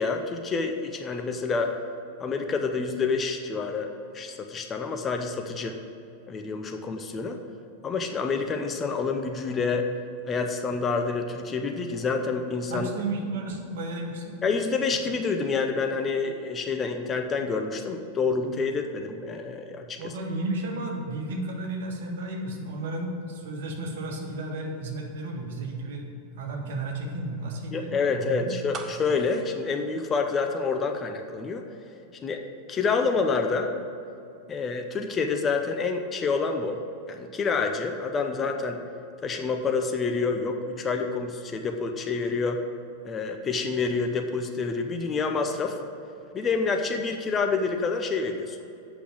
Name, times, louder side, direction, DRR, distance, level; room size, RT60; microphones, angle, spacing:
voice 1, 0.0-1.8 2.2-5.8 6.3-7.4 7.8-9.9 10.3-12.9 14.4-20.1 27.7-31.6 32.2-32.4 32.7-33.7 34.5-36.8 37.1-38.8 39.2-42.6 43.0-45.8 46.3-48.6, left 4 dB, 20° left, 4 dB, 0.8 m, -28 dB
voice 2, 12.7-14.3 20.0-28.5, right 2 dB, 55° right, 1 dB, 1.5 m, -33 dB
sound 1, 28.7-30.8 31.1-31.2, right 4 dB, 25° right, 0.8 m, -42 dB
8.5 x 5.9 x 7.6 m, 2.8 s
figure-of-eight pair, 90°, 0 cm